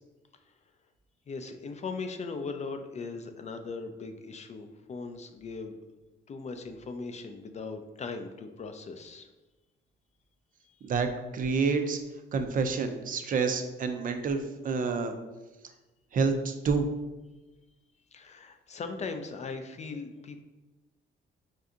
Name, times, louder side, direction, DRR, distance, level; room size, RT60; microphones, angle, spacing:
voice 1, 1.3-5.8 6.3-9.3 10.6-10.7 18.1-20.4, left 4 dB, 35° left, 7 dB, 0.3 m, -39 dB
voice 2, 10.8-12.0 12.3-14.4 14.6-15.1 16.1-16.9, right 4 dB, 45° right, 7 dB, 0.4 m, -28 dB
4.3 x 2.6 x 2.4 m, 1.1 s
cardioid pair, 90°, 20 cm